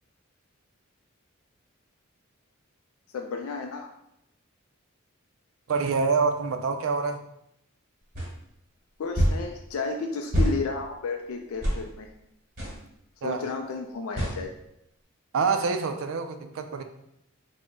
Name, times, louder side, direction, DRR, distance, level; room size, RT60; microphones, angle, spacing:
voice 1, 3.1-3.9 9.0-12.1 13.2-14.5, left 4 dB, 90° left, 4 dB, 0.3 m, -32 dB
voice 2, 5.7-7.2 13.2-13.4 15.3-16.8, right 4 dB, 70° right, 7 dB, 0.4 m, -26 dB
sound 1, 8.1-8.3 9.1-9.4 10.3-10.6 11.6-11.8 12.6-12.8 14.2-14.4, equal, 45° right, 1.2 m, -24 dB
3.7 x 2.1 x 3.3 m, 0.78 s
head